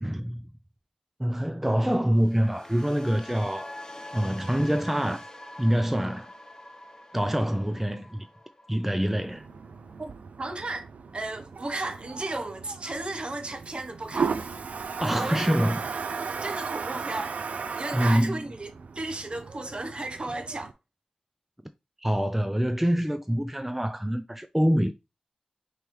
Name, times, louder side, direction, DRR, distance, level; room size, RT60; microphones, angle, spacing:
voice 1, 0.0-0.4 1.2-3.8 4.1-5.2 5.6-6.3 7.1-8.3 8.7-9.5 15.0-15.8 17.9-18.4 22.0-24.9, equal, 10° right, 0.4 m, -25 dB
sound 1, 2.1-10.2 10.5-10.8, left 1 dB, 30° left, 0.7 m, -45 dB
Toilet flush, 9.2-20.7, right 5 dB, 85° right, 0.4 m, -35 dB
voice 2, 10.4-14.5 15.0-15.5 16.4-20.7, right 2 dB, 45° right, 0.8 m, -35 dB
5.4 x 3.1 x 3.1 m
wide cardioid pair, 70°, 2 cm